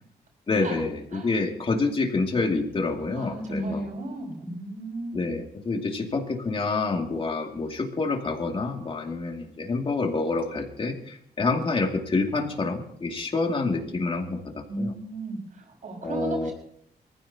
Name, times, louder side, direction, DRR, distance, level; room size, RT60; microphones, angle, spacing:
voice 1, 0.5-3.8 5.1-14.9 16.0-16.5, left 3 dB, 30° left, 2 dB, 2.5 m, -27 dB
voice 2, 3.2-5.3 14.7-16.5, right 2 dB, 50° right, 0 dB, 6.0 m, -34 dB
23.5 x 15.0 x 2.9 m, 0.67 s
cardioid pair, 130°, 17 cm